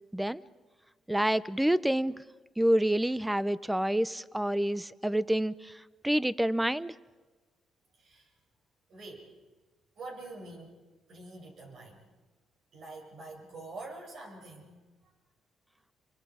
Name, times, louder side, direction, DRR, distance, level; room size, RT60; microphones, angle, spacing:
voice 1, 1.1-2.1 2.6-5.7 6.0-6.9, right 1 dB, 5° right, 17 dB, 0.7 m, -28 dB
voice 2, 8.0-8.3 8.9-9.3 10.0-10.8 11.1-12.0 12.7-14.8, right 2 dB, 65° right, 0 dB, 7.7 m, -45 dB
29.5 x 24.5 x 5.0 m, 1.3 s
cardioid pair, 90°, 0 cm